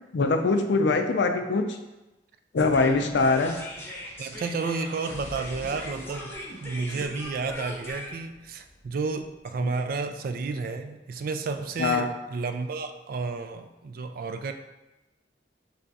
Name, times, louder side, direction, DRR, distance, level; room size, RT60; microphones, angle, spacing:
voice 1, 0.1-1.8 2.5-3.6 9.6-9.7 11.8-12.1, left 3 dB, 70° left, 6 dB, 0.5 m, -23 dB
sound 1, 2.6-9.7, left 1 dB, 10° left, 0.8 m, -40 dB
voice 2, 4.2-6.3 6.6-14.5, right 4 dB, 50° right, 7 dB, 0.3 m, -31 dB
3.5 x 3.3 x 4.0 m, 1.0 s
head